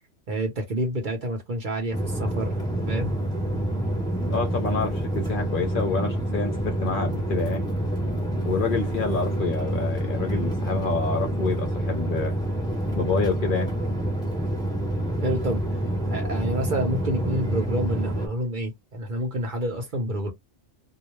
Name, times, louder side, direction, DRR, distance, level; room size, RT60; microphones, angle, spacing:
voice 1, 0.3-2.5 2.9-3.1 3.5-3.6 15.2-15.6 16.1-20.3, right 1 dB, 50° right, 0.8 m, -28 dB
sound 1, 1.9-18.3, right 1 dB, 5° left, 0.7 m, -27 dB
voice 2, 4.3-7.7 8.4-12.3 13.0-13.7, left 4 dB, 55° left, 0.7 m, -28 dB
2.3 x 2.1 x 3.0 m
omnidirectional pair, 1.2 m